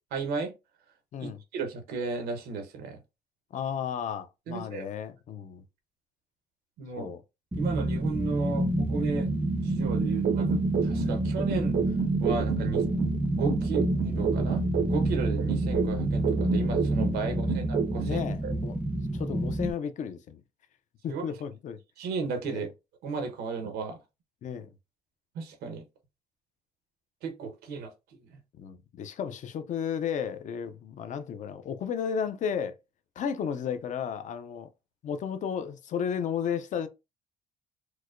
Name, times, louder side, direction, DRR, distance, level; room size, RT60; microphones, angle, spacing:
voice 1, 0.1-0.5 1.2-3.0 4.5-4.9 6.8-7.1 7.5-9.3 9.6-11.8 12.2-12.8 13.3-14.6 14.9-18.5 21.1-21.2 22.0-22.7 23.0-24.0 25.3-25.8 27.2-27.9 28.3-28.4, right 5 dB, 90° right, 1.0 m, -34 dB
voice 2, 3.5-5.6 7.0-7.2 17.2-17.5 18.0-18.7 19.1-20.4 21.0-21.8 22.4-22.7 24.4-24.7 28.6-32.8 33.2-34.7 35.0-36.9, left 7 dB, 50° left, 0.5 m, -33 dB
sound 1, 7.5-19.7, right 1 dB, 10° right, 0.3 m, -28 dB
sound 2, 10.2-13.2 13.5-17.2 17.5-18.2, right 7 dB, 75° right, 0.5 m, -30 dB
4.6 x 2.1 x 2.5 m
cardioid pair, 125°, 16 cm